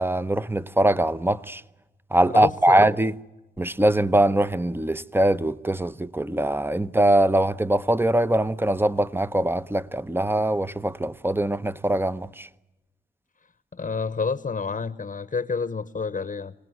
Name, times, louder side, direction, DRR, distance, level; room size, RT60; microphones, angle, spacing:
voice 1, 0.0-1.6 2.1-3.1 3.6-12.5, right 1 dB, 15° right, 0.9 m, -22 dB
voice 2, 2.3-2.9 13.7-16.5, left 5 dB, 50° left, 1.0 m, -29 dB
26.5 x 18.5 x 9.5 m
cardioid pair, 50°, 18 cm